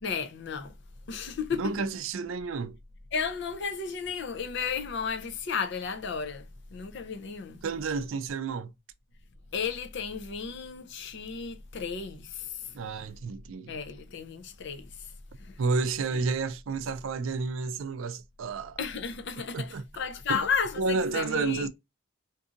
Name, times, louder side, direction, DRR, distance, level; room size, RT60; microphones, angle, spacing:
voice 1, 0.0-0.7 1.1-1.6 3.1-7.6 9.5-12.7 13.7-15.1 15.4-15.6 16.1-16.2 18.8-21.7, left 6 dB, 55° left, 0.5 m, -33 dB
voice 2, 1.6-2.8 7.6-8.7 12.7-13.8 15.6-18.8 19.5-19.8 20.3-20.4 20.8-21.7, right 4 dB, 70° right, 0.4 m, -31 dB
3.8 x 2.6 x 2.4 m
head